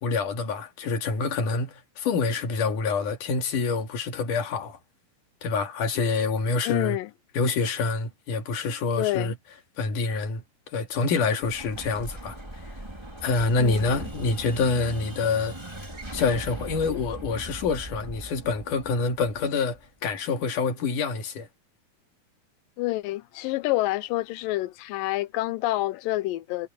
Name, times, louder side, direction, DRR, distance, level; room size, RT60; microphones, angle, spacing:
voice 1, 0.0-4.8 5.4-7.0 7.3-9.4 9.8-10.4 10.7-12.4 13.2-15.6 16.1-21.5, left 4 dB, 65° left, 3.7 m, -26 dB
voice 2, 6.7-7.1 9.0-9.3 13.6-14.0 22.8-26.7, left 18 dB, 85° left, 2.3 m, -28 dB
Explosion, 11.4-20.1, right 1 dB, 10° right, 3.0 m, -39 dB
omnidirectional pair, 4.0 m